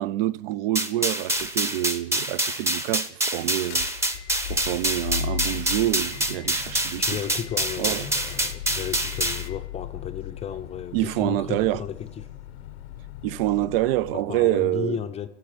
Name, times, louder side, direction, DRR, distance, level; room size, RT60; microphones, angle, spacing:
voice 1, 0.0-3.9 4.5-7.0 7.8-8.0 10.9-11.8 13.2-15.0, right 15 dB, 60° right, 0.5 m, -26 dB
sound 1, 0.8-9.5, right 1 dB, 10° right, 0.8 m, -26 dB
sound 2, 1.3-1.8 2.2-2.3 3.5-14.1, left 10 dB, 90° left, 0.8 m, -37 dB
voice 2, 7.0-12.3 14.1-15.3, left 9 dB, 20° left, 0.5 m, -34 dB
13.5 x 8.0 x 9.2 m
hypercardioid pair, 120°, 33 cm